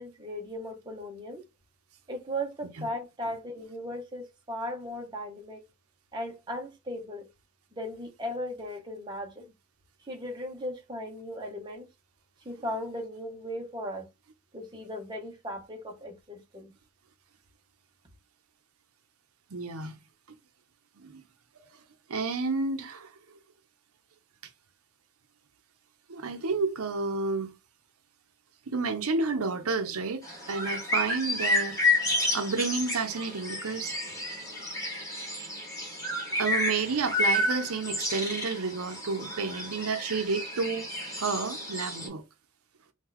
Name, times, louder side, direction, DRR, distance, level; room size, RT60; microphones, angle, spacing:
voice 1, 0.0-1.4 2.1-5.6 6.1-7.2 7.7-9.5 10.1-11.9 12.4-14.1 14.5-16.7, equal, 20° right, 0.8 m, -37 dB
voice 2, 19.5-20.0 21.0-21.2 22.1-23.4 26.1-27.5 28.7-31.8 32.3-34.0 36.4-40.9 41.2-42.2, right 4 dB, 80° right, 0.7 m, -30 dB
sound 1, 30.2-42.1, left 1 dB, 15° left, 1.3 m, -31 dB
3.0 x 2.3 x 3.8 m
head